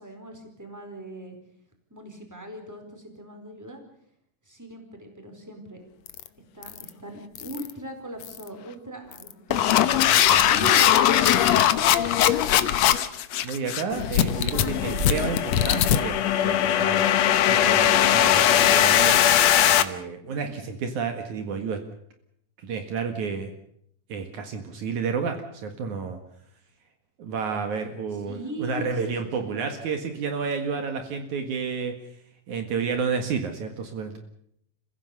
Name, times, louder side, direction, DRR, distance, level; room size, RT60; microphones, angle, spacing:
voice 1, 0.0-1.4 1.9-3.8 4.4-5.8 6.5-9.8 10.2-11.2 20.2-20.6 28.2-29.6, right 1 dB, 5° right, 4 dB, 4.3 m, -39 dB
sound 1, 6.1-6.3 6.6-6.9 7.4-7.7 8.2-8.5 9.1-19.8, left 11 dB, 65° left, 1.9 m, -20 dB
voice 2, 10.0-10.6 11.8-12.1 13.4-17.1 17.4-19.2 19.8-21.8 22.6-23.5 24.1-26.2 27.2-31.9 32.5-34.2, right 5 dB, 65° right, 6 dB, 3.1 m, -31 dB
Chewing mastication, 11.6-11.9 12.5-12.6 12.8-13.0 13.5-13.6 13.9-15.4 15.7-17.0 17.4-17.5, right 4 dB, 40° right, 3.9 m, -40 dB
30.0 x 16.0 x 6.8 m, 0.71 s
omnidirectional pair, 3.7 m